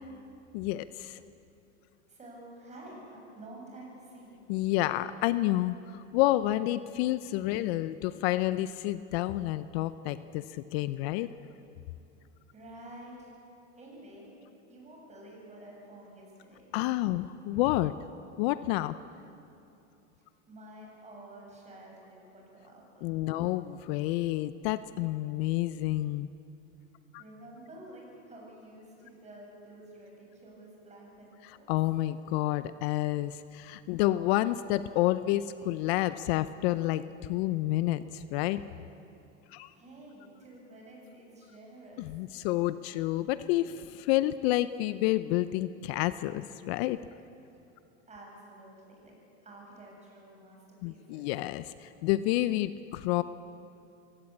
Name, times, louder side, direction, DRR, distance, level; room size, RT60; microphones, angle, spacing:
voice 1, 0.5-1.2 4.5-11.3 16.7-17.9 18.4-19.0 23.0-26.3 27.1-27.2 31.4-38.6 39.5-39.7 42.0-47.0 50.8-53.2, left 16 dB, 60° left, 14 dB, 0.7 m, -29 dB
voice 2, 2.1-4.4 12.5-13.3 13.8-14.3 14.7-16.7 20.5-23.3 27.2-31.7 39.7-42.0 48.1-51.3, right 1 dB, 20° right, -2 dB, 7.7 m, -50 dB
23.0 x 18.0 x 8.5 m, 2.7 s
supercardioid pair, 125°, 36 cm